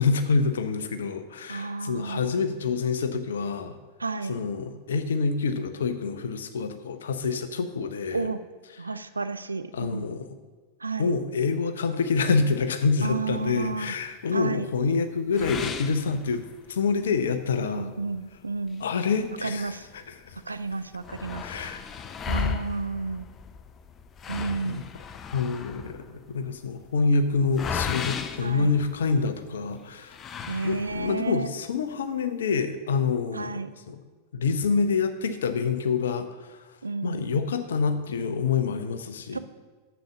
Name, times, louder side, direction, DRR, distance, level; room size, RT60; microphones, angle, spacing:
voice 1, 0.0-3.7 4.3-8.3 9.7-10.3 11.0-16.4 16.7-17.9 18.8-20.4 21.4-21.9 24.6-24.8 25.3-30.2 30.6-33.5 33.9-34.0 34.3-36.6 37.0-39.4, left 5 dB, 65° left, 10 dB, 0.8 m, -27 dB
voice 2, 1.5-2.3 4.0-4.4 8.1-8.4 8.8-10.1 10.8-11.1 13.0-13.9 14.3-14.7 17.6-18.8 19.4-19.9 20.5-21.4 22.3-23.3 24.3-24.9 28.4-28.8 30.5-31.5 33.3-33.7 36.8-37.3 39.3-39.4, right 4 dB, 80° right, 12 dB, 0.4 m, -31 dB
sound 1, 15.3-16.8 17.2-17.3 17.8-17.9 18.7-20.0 20.3-20.4 20.6-29.4 30.1-31.2, left 6 dB, 25° left, 0.6 m, -35 dB
7.7 x 7.1 x 6.1 m, 1.3 s
figure-of-eight pair, 90°, 0 cm